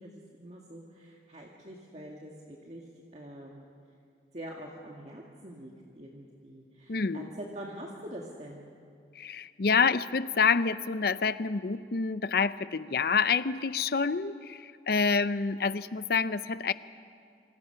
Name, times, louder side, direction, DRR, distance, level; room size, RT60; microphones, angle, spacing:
voice 1, 0.0-2.8 3.1-3.7 4.3-8.7, right 1 dB, 40° right, -1 dB, 1.9 m, -45 dB
voice 2, 6.9-7.3 9.1-16.7, left 5 dB, 60° left, 14 dB, 0.6 m, -27 dB
26.5 x 26.0 x 5.8 m, 2.4 s
head